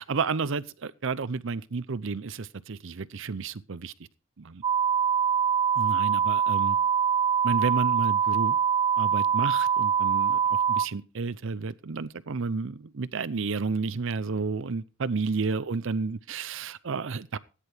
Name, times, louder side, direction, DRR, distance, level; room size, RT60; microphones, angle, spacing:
voice 1, 0.0-3.9 4.4-4.6 5.8-6.8 7.4-8.6 9.0-17.4, right 4 dB, 65° right, 0.6 m, -31 dB
sound 1, 4.6-10.9, right 7 dB, 20° right, 0.5 m, -24 dB
18.0 x 10.0 x 3.4 m
head